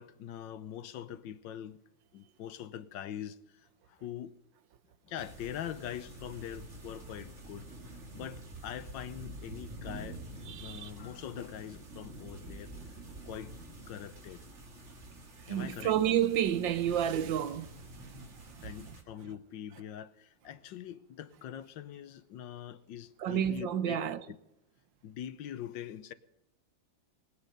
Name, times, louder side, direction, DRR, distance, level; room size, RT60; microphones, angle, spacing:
voice 1, 0.0-1.8 2.1-4.3 5.1-7.7 8.1-12.7 13.2-13.5 13.9-14.4 15.5-15.9 18.6-24.4 25.0-26.1, left 10 dB, 75° left, 1.4 m, -43 dB
sound 1, 5.2-19.0, right 1 dB, 40° right, 2.1 m, -47 dB
voice 2, 10.5-10.9 15.4-18.7 23.2-24.2, right 10 dB, 75° right, 1.5 m, -31 dB
21.0 x 9.9 x 5.3 m
omnidirectional pair, 2.1 m